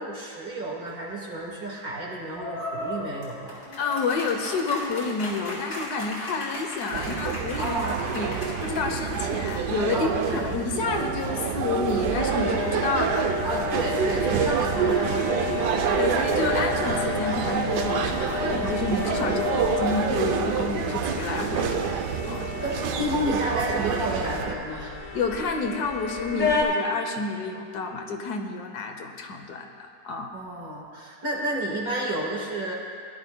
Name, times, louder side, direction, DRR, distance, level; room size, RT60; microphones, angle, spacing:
voice 1, 0.0-3.6 7.6-8.0 9.9-10.5 13.4-16.0 19.3-19.4 22.6-25.0 30.3-32.7, right 1 dB, 60° right, -4 dB, 2.2 m, -31 dB
sound 1, 2.3-9.8, left 1 dB, 90° left, 4.1 m, -36 dB
voice 2, 3.8-7.7 8.1-13.3 16.0-22.0 22.3-22.5 25.1-30.3, left 4 dB, 70° left, 4 dB, 1.4 m, -29 dB
sound 2, 6.9-24.6, right 7 dB, 80° right, 1.2 m, -27 dB
sound 3, 12.1-26.6, left 5 dB, 30° left, 1.7 m, -32 dB
18.5 x 11.5 x 2.2 m, 2.2 s
omnidirectional pair, 1.8 m